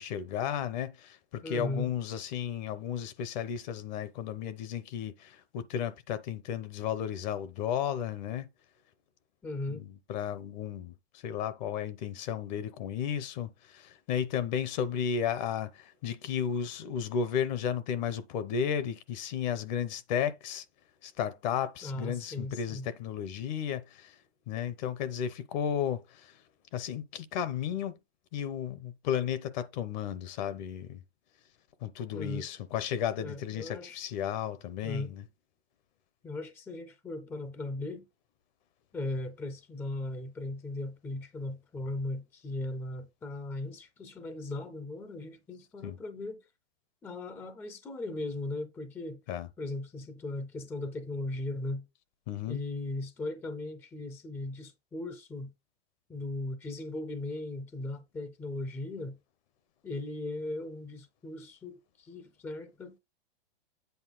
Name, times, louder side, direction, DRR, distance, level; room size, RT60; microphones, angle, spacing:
voice 1, 0.0-8.5 9.7-20.6 21.0-24.2 24.5-26.4 26.7-28.0 28.3-31.0 31.8-35.2 45.8-46.0 49.3-49.5 52.3-52.6, left 8 dB, 45° left, 0.9 m, -34 dB
voice 2, 1.4-1.9 9.4-9.8 21.8-22.9 32.1-32.5 33.2-34.0 34.8-35.1 36.2-38.1 38.9-46.4 47.0-49.2 49.6-51.9 52.5-55.5 56.1-59.2 59.8-63.0, left 2 dB, 5° left, 0.5 m, -38 dB
8.1 x 4.3 x 4.0 m
hypercardioid pair, 140°, 31 cm